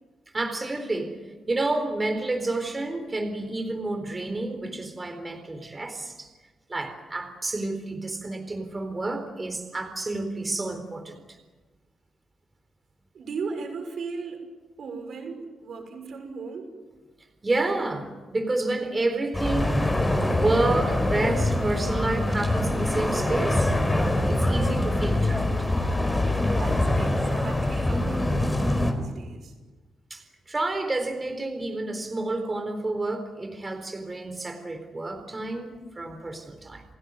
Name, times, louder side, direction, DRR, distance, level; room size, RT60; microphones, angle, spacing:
voice 1, 0.3-1.2 1.5-6.3 6.7-11.4 17.4-20.0 20.4-23.7 24.3-25.7 30.1-36.8, right 2 dB, 25° right, 7 dB, 4.0 m, -29 dB
voice 2, 13.1-14.4 14.8-16.7 26.4-29.5, right 4 dB, 65° right, 6 dB, 6.5 m, -37 dB
sound 1, 19.3-28.9, left 1 dB, 15° left, 4.6 m, -24 dB
29.5 x 16.5 x 9.6 m, 1.3 s
cardioid pair, 75°, 0 cm